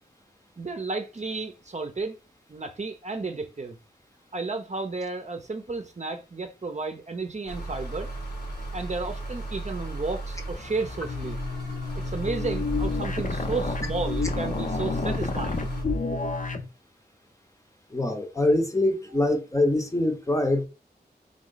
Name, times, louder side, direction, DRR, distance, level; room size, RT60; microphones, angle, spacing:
voice 1, 0.6-2.2 2.5-3.8 4.3-8.1 8.7-11.4 12.0-15.7, right 3 dB, 40° right, 0.7 m, -32 dB
sound 1, 7.5-15.8, right 2 dB, 80° left, 1.5 m, -35 dB
sound 2, 11.0-16.7, left 3 dB, 50° left, 0.7 m, -30 dB
voice 2, 17.9-20.7, left 1 dB, 20° left, 0.8 m, -24 dB
3.8 x 3.1 x 3.9 m
wide cardioid pair, 70°, 17 cm